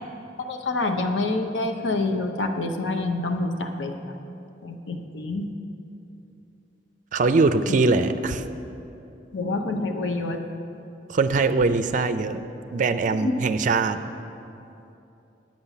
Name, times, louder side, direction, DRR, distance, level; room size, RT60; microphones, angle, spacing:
voice 1, 0.4-4.0 4.6-5.5 7.7-7.8 9.3-10.4 13.2-13.3, left 2 dB, 90° left, 5 dB, 0.7 m, -27 dB
voice 2, 7.1-8.4 11.1-14.0, right 3 dB, 45° right, 10 dB, 0.4 m, -22 dB
9.3 x 5.6 x 8.1 m, 2.8 s
head